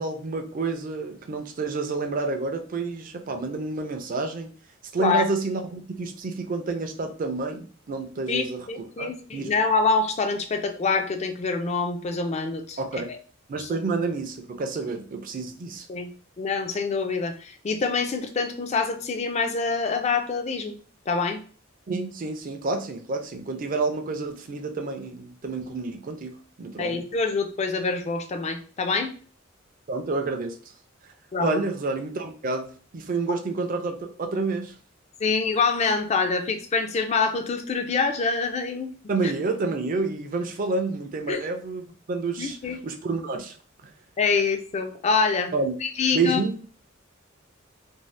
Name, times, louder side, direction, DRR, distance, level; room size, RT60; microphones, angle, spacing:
voice 1, 0.0-4.5 4.9-9.5 12.8-13.1 13.5-15.9 21.9-27.0 29.9-30.6 31.4-34.7 39.1-42.6 42.8-43.6 43.8-43.9 45.5-45.7 46.1-46.5, right 3 dB, 40° right, 5 dB, 0.4 m, -29 dB
voice 2, 8.3-12.8 13.6-13.7 15.9-16.1 16.4-20.8 21.1-21.4 26.8-29.1 31.3-31.6 35.2-38.9 39.2-39.3 41.3-41.4 42.4-42.8 44.2-45.5 45.8-46.4, left 4 dB, 35° left, 6 dB, 0.3 m, -25 dB
2.6 x 2.0 x 3.1 m, 0.41 s
head